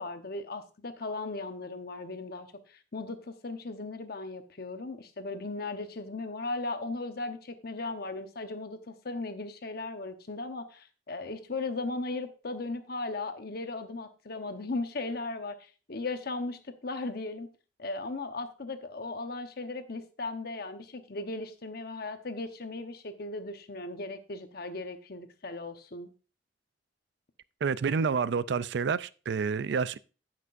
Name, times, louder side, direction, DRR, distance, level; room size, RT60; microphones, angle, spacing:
voice 1, 0.0-17.5 17.8-26.1, left 3 dB, 60° left, 1.0 m, -37 dB
voice 2, 27.6-30.0, right 5 dB, 65° right, 0.4 m, -28 dB
15.0 x 5.9 x 2.5 m
head